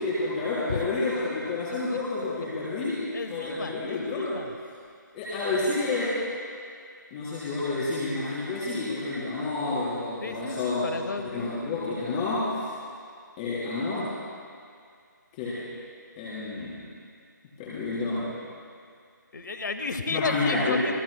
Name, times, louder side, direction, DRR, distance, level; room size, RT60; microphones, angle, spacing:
voice 1, 0.0-4.3 5.1-6.2 7.1-10.8 11.2-12.7 13.4-14.1 15.4-15.6 16.2-16.8 17.6-18.3 20.1-20.8, left 3 dB, 25° left, -9 dB, 3.9 m, -29 dB
voice 2, 3.1-4.5 10.2-11.7 19.3-21.0, left 3 dB, 65° left, 8 dB, 1.1 m, -33 dB
28.5 x 18.0 x 2.2 m, 2.2 s
figure-of-eight pair, 150°, 11 cm